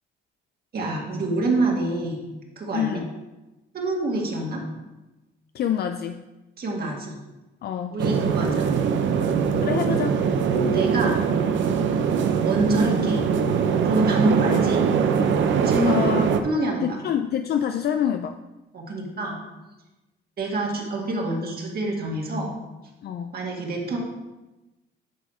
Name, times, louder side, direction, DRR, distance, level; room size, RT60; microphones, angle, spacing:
voice 1, 0.7-2.2 2.6-3.0 3.7-4.6 6.6-7.2 7.9-8.7 10.7-11.2 12.4-13.3 13.8-14.9 15.6-16.0 16.4-17.0 18.7-19.4 20.4-22.5 23.3-24.0, right 1 dB, 50° right, -1 dB, 1.9 m, -26 dB
voice 2, 2.7-3.1 5.5-6.2 7.6-8.0 9.6-10.2 15.9-16.3 16.8-18.4 23.0-23.3, left 9 dB, 55° left, 8 dB, 0.4 m, -26 dB
sound 1, 8.0-16.4, right 6 dB, 70° right, 0.7 m, -22 dB
9.4 x 4.2 x 4.3 m, 1.0 s
cardioid pair, 90°, 20 cm